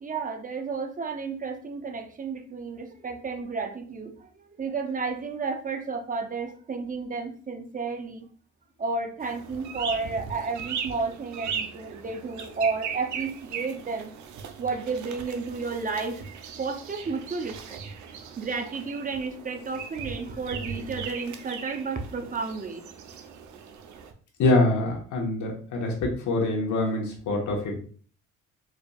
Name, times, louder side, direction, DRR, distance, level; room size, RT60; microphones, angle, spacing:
voice 1, 0.0-4.3 4.6-8.3 8.8-14.1 14.6-16.3 16.6-17.8 18.4-22.8, right 4 dB, 25° right, 6 dB, 0.6 m, -32 dB
sound 1, 9.2-24.1, right 6 dB, 70° right, 0.6 m, -38 dB
voice 2, 24.4-27.8, left 2 dB, 75° left, 0 dB, 1.2 m, -25 dB
4.6 x 2.6 x 2.3 m, 0.43 s
cardioid pair, 90°, 30 cm